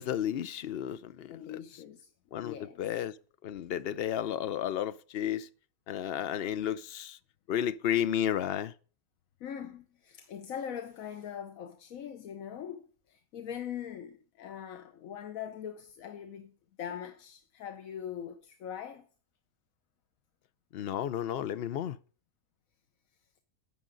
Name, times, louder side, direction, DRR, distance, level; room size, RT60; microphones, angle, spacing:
voice 1, 0.0-1.6 2.3-3.1 3.4-5.5 5.9-7.2 7.5-8.7 20.7-22.0, left 10 dB, 55° left, 0.7 m, -32 dB
voice 2, 1.3-2.1 2.4-2.8 9.4-19.1, left 9 dB, 85° left, 1.2 m, -42 dB
12.5 x 8.7 x 3.9 m
omnidirectional pair, 1.4 m